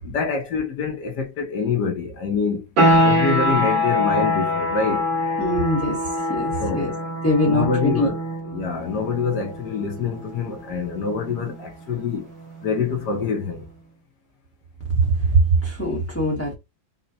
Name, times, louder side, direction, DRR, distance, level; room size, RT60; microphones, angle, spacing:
voice 1, 0.0-2.7 3.0-5.1 6.6-7.0 7.4-8.2 8.4-12.3 12.6-13.7, left 5 dB, 65° left, 1.4 m, -26 dB
sound 1, 2.8-13.3, left 1 dB, 80° right, 2.3 m, -24 dB
voice 2, 5.4-6.0 6.3-6.9 7.2-8.1 14.9-16.5, right 1 dB, 10° left, 0.7 m, -21 dB
5.3 x 2.2 x 2.8 m
omnidirectional pair, 2.1 m